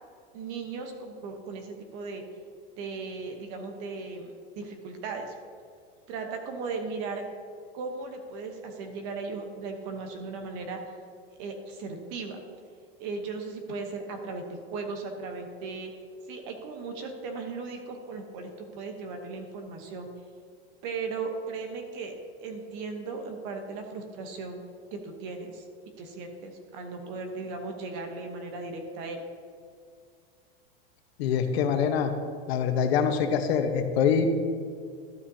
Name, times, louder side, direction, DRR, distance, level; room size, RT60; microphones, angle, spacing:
voice 1, 0.3-2.2 2.8-5.3 6.1-7.2 7.7-10.8 11.4-12.4 13.0-14.4 14.7-15.9 16.3-20.1 20.8-22.1 22.4-24.6 24.9-25.6 26.0-29.2, right 4 dB, 40° right, 4 dB, 1.0 m, -37 dB
voice 2, 31.2-32.1 32.5-34.4, left 6 dB, 70° left, 6 dB, 1.1 m, -24 dB
12.5 x 8.8 x 2.8 m, 2.2 s
supercardioid pair, 170°, 32 cm